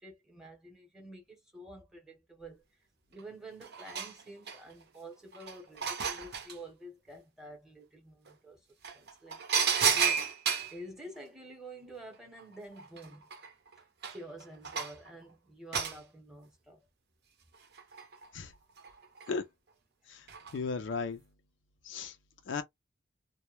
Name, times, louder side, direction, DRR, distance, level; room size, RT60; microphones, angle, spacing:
voice 1, 0.0-2.6 3.1-8.6 8.9-10.3 10.7-13.3 14.1-16.8, right 1 dB, 5° right, 0.8 m, -49 dB
sound 1, 3.2-3.3 3.6-4.8 5.3-6.6 8.3-8.4 8.8-10.8 12.4-12.5 12.8-15.1 15.7-16.0 17.5-18.3 18.8-19.3 20.3-20.6 20.9-21.0, right 6 dB, 55° right, 0.6 m, -32 dB
voice 2, 20.5-21.2 21.8-22.1 22.5-22.6, left 4 dB, 65° left, 0.4 m, -35 dB
2.1 x 2.1 x 2.9 m
head